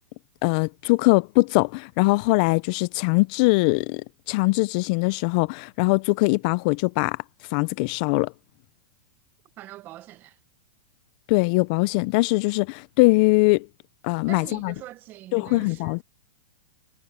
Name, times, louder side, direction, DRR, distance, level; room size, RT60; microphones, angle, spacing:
voice 1, 0.4-4.0 4.3-7.2 7.5-8.3 11.3-13.7 14.0-14.7 15.3-16.0, left 25 dB, 45° left, 0.5 m, -21 dB
voice 2, 9.6-10.4 14.3-16.0, right 15 dB, 30° right, 1.1 m, -43 dB
hypercardioid pair, 135°, 6 cm